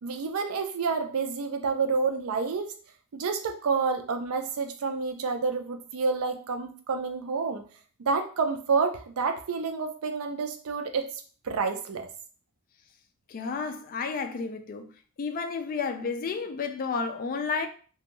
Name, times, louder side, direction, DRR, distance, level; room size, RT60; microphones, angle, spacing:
voice 1, 0.0-2.7 3.1-7.6 8.0-11.1 11.4-12.1, right 4 dB, 70° right, 0.4 m, -29 dB
voice 2, 13.3-14.9 15.2-17.7, left 5 dB, 40° left, 0.3 m, -31 dB
2.6 x 2.3 x 2.9 m
head